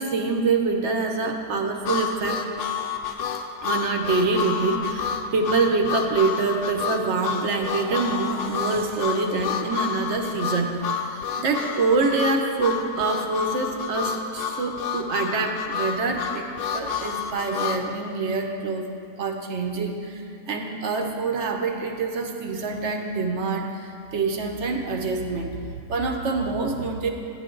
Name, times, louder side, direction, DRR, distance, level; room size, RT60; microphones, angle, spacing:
voice 1, 0.0-2.4 3.6-10.7 11.0-18.9 19.2-25.5 25.9-27.1, right 4 dB, 55° right, 3 dB, 0.8 m, -25 dB
Harmonica, 1.8-17.8, left 7 dB, 70° left, 0.7 m, -29 dB
sound 1, 5.0-11.0 11.5-11.7, right 2 dB, 90° right, 2.1 m, -43 dB
10.5 x 9.8 x 3.8 m, 2.4 s
omnidirectional pair, 1.9 m